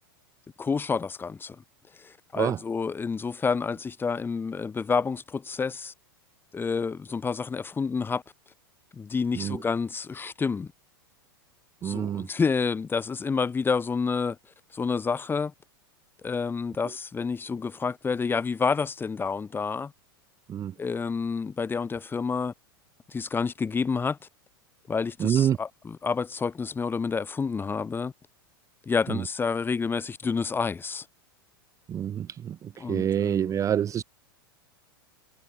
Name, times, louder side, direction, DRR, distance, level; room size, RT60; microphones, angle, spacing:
voice 1, 0.6-1.6 2.0-5.9 6.5-8.2 8.9-10.7 11.8-14.4 14.7-15.5 16.2-19.9 20.8-22.5 23.1-24.2 24.9-28.1 28.9-31.0 32.8-33.7, left 5 dB, 15° left, 4.7 m, -29 dB
voice 2, 11.8-12.3 20.5-20.7 25.2-25.6 31.9-32.5 32.9-34.0, right 9 dB, 25° right, 0.7 m, -26 dB
hypercardioid pair, 105°, 12 cm